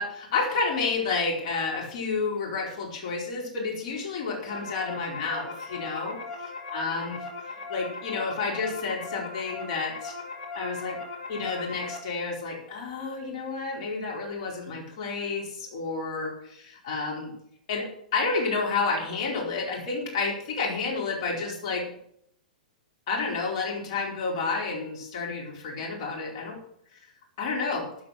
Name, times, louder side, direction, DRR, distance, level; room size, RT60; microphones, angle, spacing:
voice 1, 0.0-6.2 6.7-10.1 10.5-11.0 11.3-17.3 17.7-17.9 18.1-21.9 23.1-26.6 26.9-27.0 27.4-27.9, left 4 dB, 45° left, -1 dB, 4.7 m, -30 dB
sound 1, 4.1-12.0, left 3 dB, 70° left, 4.5 m, -39 dB
13.0 x 9.1 x 6.1 m, 0.70 s
figure-of-eight pair, 105°, 4 cm